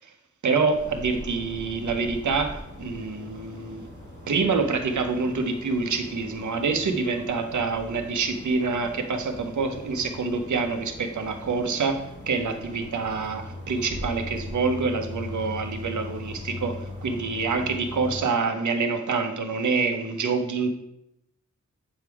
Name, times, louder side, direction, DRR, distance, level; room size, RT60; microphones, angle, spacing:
voice 1, 0.4-3.8 4.3-16.8 17.0-20.7, right 4 dB, 75° right, 5 dB, 0.8 m, -26 dB
sound 1, 0.7-18.2, left 2 dB, 40° left, 1.8 m, -40 dB
8.0 x 3.5 x 4.7 m, 0.84 s
wide cardioid pair, 145°, 30 cm